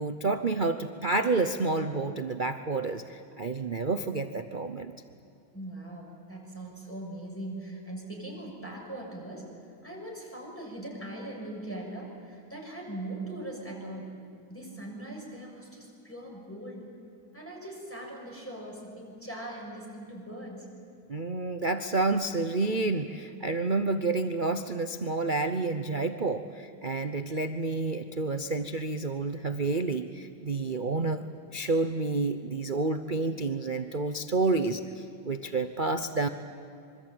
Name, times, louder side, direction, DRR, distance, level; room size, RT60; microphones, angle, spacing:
voice 1, 0.0-5.0 21.1-31.2 31.5-36.3, right 3 dB, 60° right, 8 dB, 0.5 m, -29 dB
voice 2, 5.5-9.5 9.8-14.2 14.5-16.9 17.3-20.7, right 1 dB, 5° left, -2 dB, 6.7 m, -40 dB
26.0 x 24.0 x 9.0 m, 2.6 s
omnidirectional pair, 2.3 m